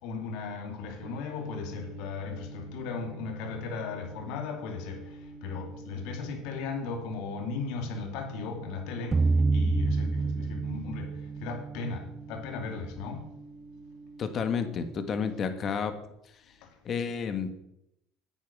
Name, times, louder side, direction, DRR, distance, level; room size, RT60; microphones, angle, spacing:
voice 1, 0.0-5.0 5.4-9.2 9.5-11.1 11.4-13.2, left 5 dB, 70° left, 2.5 m, -36 dB
sound 1, 1.0-15.8, right 2 dB, 75° right, 2.4 m, -47 dB
sound 2, 9.1-12.2, right 3 dB, 20° right, 0.4 m, -27 dB
voice 2, 14.2-15.9 16.8-17.5, left 6 dB, 40° left, 1.6 m, -30 dB
9.2 x 8.9 x 6.2 m
supercardioid pair, 100°, 0 cm